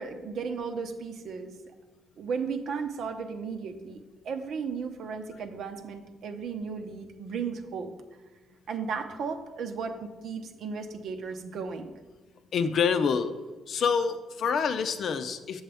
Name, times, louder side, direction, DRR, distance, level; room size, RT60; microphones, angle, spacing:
voice 1, 0.0-1.6 2.2-7.9 8.7-11.9, right 5 dB, 70° right, 6 dB, 0.8 m, -35 dB
voice 2, 12.5-13.3 13.7-15.6, left 6 dB, 65° left, 10 dB, 0.6 m, -26 dB
7.7 x 7.2 x 3.4 m, 1.3 s
cardioid pair, 90°, 0 cm